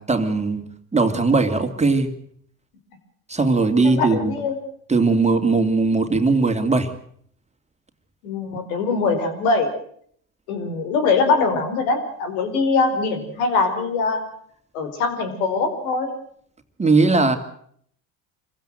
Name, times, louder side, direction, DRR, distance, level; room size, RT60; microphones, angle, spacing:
voice 1, 0.0-2.1 3.3-4.4 4.9-6.9 16.8-17.4, right 3 dB, 15° right, 6 dB, 2.7 m, -19 dB
voice 2, 3.8-4.6 8.2-9.7 10.5-14.2 14.7-16.1, left 4 dB, 85° left, 8 dB, 5.0 m, -22 dB
26.0 x 16.0 x 7.8 m, 0.64 s
supercardioid pair, 85°, 41 cm